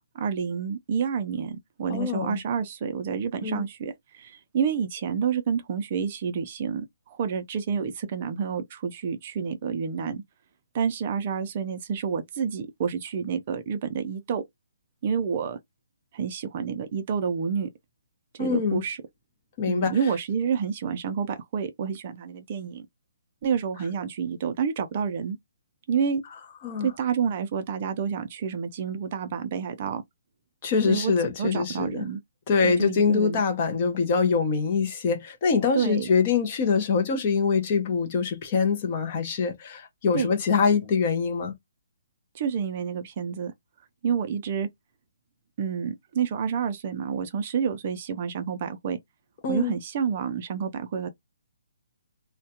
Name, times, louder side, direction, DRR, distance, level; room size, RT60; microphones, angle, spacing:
voice 1, 0.1-10.2 10.7-14.4 15.0-15.6 16.1-17.7 18.3-19.0 19.7-22.9 23.4-25.4 25.9-26.2 26.8-30.0 30.9-31.1 31.4-32.2 32.6-33.4 35.7-36.1 40.1-40.3 42.3-43.5 44.0-44.7 45.6-49.0 49.5-51.1, right 6 dB, 30° right, 0.4 m, -29 dB
voice 2, 1.9-2.4 3.4-3.7 18.4-18.8 19.6-20.0 26.6-26.9 30.6-32.1 32.5-41.6 49.4-49.7, left 5 dB, 25° left, 0.6 m, -24 dB
2.2 x 2.1 x 2.8 m
hypercardioid pair, 170°, 0 cm